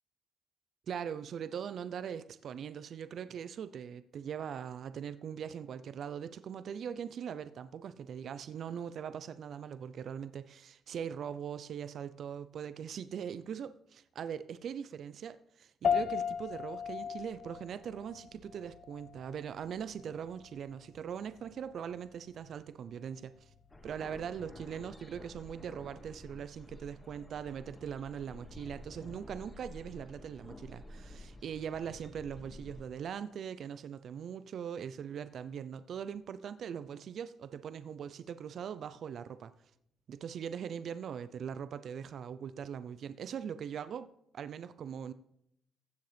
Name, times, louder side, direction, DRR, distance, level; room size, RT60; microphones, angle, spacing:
voice 1, 0.9-23.5 23.8-39.5 40.1-44.1 44.3-45.1, right 8 dB, 60° right, 0.6 m, -41 dB
sound 1, 15.8-25.4, left 7 dB, 55° left, 1.5 m, -39 dB
sound 2, 23.7-32.8, left 1 dB, 20° left, 2.0 m, -51 dB
15.5 x 6.6 x 5.1 m
cardioid pair, 90°, 0 cm